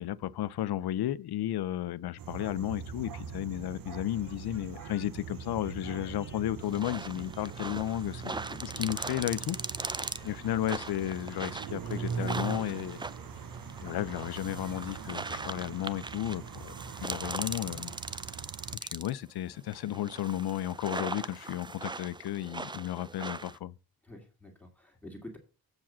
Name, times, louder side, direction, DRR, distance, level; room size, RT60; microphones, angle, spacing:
voice 1, 0.0-8.3 8.6-9.9 10.2-13.0 13.8-17.9 18.7-23.7, left 13 dB, 85° left, 0.5 m, -33 dB
sound 1, 2.2-18.8, right 6 dB, 65° right, 0.8 m, -42 dB
sound 2, 4.1-16.4, left 4 dB, 30° left, 1.6 m, -60 dB
sound 3, 6.6-19.2 19.7-23.6, right 3 dB, 15° right, 0.3 m, -40 dB
voice 2, 8.3-8.6 24.0-25.4, left 1 dB, 5° left, 1.9 m, -47 dB
7.5 x 4.8 x 7.2 m
wide cardioid pair, 140°, 37 cm